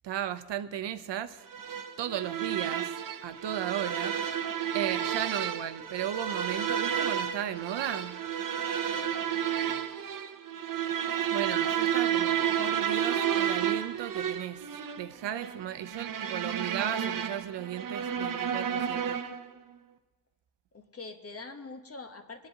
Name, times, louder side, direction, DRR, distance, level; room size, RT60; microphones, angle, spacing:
voice 1, 0.0-1.4 2.0-2.9 3.2-4.2 4.7-8.2 11.3-14.6 15.0-19.2, right 10 dB, 85° right, 12 dB, 0.7 m, -35 dB
sound 1, 1.5-19.5, right 9 dB, 50° right, 0.7 m, -31 dB
voice 2, 8.9-9.8 20.7-22.5, left 3 dB, 35° left, 6 dB, 1.1 m, -45 dB
20.0 x 10.5 x 2.8 m, 1.3 s
wide cardioid pair, 125°, 41 cm